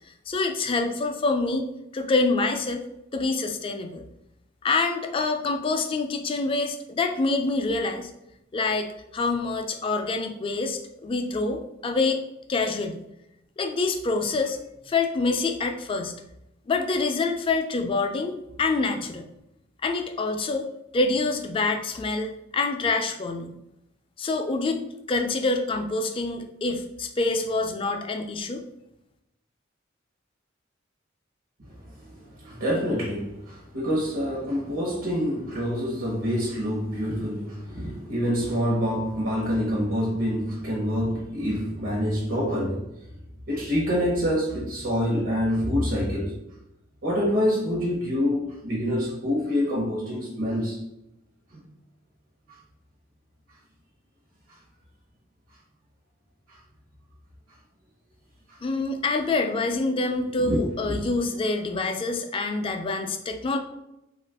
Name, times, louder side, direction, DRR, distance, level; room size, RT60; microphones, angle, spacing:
voice 1, 0.3-1.6 1.9-2.8 3.1-4.0 4.6-8.1 8.5-8.9 9.1-12.2 12.5-13.0 13.6-14.6 14.9-16.1 16.7-19.3 19.8-20.7 20.9-23.5 24.2-28.6 58.6-63.6, left 3 dB, 25° left, 0.3 m, -26 dB
voice 2, 32.4-42.9 43.5-46.4 47.0-50.8 60.4-60.9, equal, 80° right, 0.9 m, -26 dB
2.8 x 2.4 x 3.4 m
head